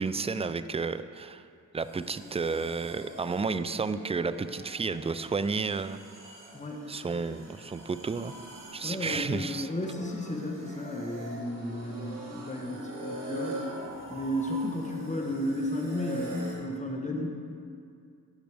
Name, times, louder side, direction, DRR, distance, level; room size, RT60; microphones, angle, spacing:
voice 1, 0.0-1.4 1.7-6.0 6.9-8.3 8.7-9.7, right 4 dB, 20° right, 12 dB, 0.4 m, -31 dB
sound 1, 1.8-16.6, right 2 dB, 60° right, 2.4 m, -43 dB
voice 2, 8.8-13.6 14.1-17.3, left 1 dB, 20° left, 1 dB, 1.2 m, -33 dB
15.5 x 6.2 x 3.5 m, 2.4 s
cardioid pair, 55°, 36 cm